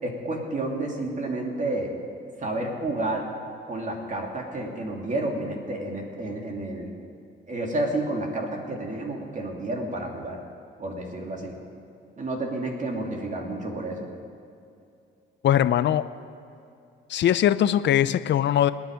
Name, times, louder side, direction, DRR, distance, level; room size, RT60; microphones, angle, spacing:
voice 1, 0.0-1.9 2.4-3.3 3.7-6.9 7.5-10.4 10.8-11.6 12.2-14.0, right 2 dB, 40° right, 1 dB, 2.7 m, -30 dB
voice 2, 15.4-16.1 17.1-18.7, left 11 dB, 65° left, 14 dB, 0.7 m, -21 dB
26.5 x 9.6 x 5.2 m, 2.6 s
cardioid pair, 90°, 20 cm